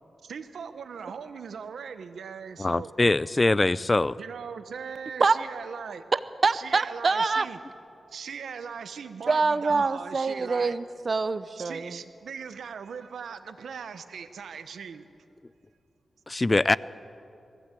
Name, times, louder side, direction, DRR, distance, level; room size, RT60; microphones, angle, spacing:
voice 1, 0.2-2.9 4.2-6.0 6.5-7.6 8.1-10.8 11.6-15.1, right 6 dB, 85° right, 11 dB, 1.0 m, -39 dB
voice 2, 2.6-4.2 16.3-16.8, left 2 dB, 30° left, 19 dB, 0.4 m, -23 dB
voice 3, 6.1-7.5 9.3-12.0, right 4 dB, 50° right, 14 dB, 0.7 m, -25 dB
20.5 x 15.0 x 8.4 m, 2.7 s
cardioid pair, 65°, 0 cm